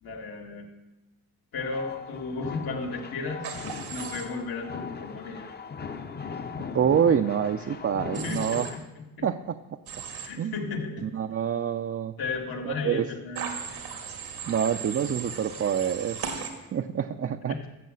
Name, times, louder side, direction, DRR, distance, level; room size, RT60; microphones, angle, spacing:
voice 1, 0.0-0.7 1.5-3.5 3.9-5.5 7.9-9.3 10.1-11.1 12.2-13.8 17.5-17.6, left 4 dB, 75° left, 0 dB, 2.3 m, -34 dB
sound 1, 1.6-8.8, left 5 dB, 25° left, 0.8 m, -39 dB
Human voice / Train, 3.4-4.2 8.1-8.7 9.9-10.3 13.4-16.5, right 6 dB, 85° right, 1.9 m, -36 dB
voice 2, 6.7-8.7 9.2-9.6 10.4-10.5 11.0-12.1 12.6-13.1 14.5-16.2 16.7-17.7, right 8 dB, 40° right, 7 dB, 0.5 m, -26 dB
13.5 x 6.3 x 7.6 m, 1.0 s
cardioid pair, 85°, 36 cm